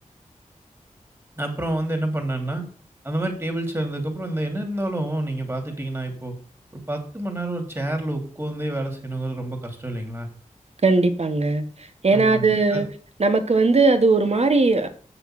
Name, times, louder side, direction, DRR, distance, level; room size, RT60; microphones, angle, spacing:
voice 1, 1.4-2.6 3.0-6.3 6.7-10.3 12.1-12.9, right 1 dB, 20° right, 2.8 m, -28 dB
voice 2, 10.8-11.6 12.0-12.9 13.2-14.9, right 3 dB, 50° right, 1.4 m, -18 dB
7.8 x 6.9 x 6.1 m
wide cardioid pair, 70°, 13 cm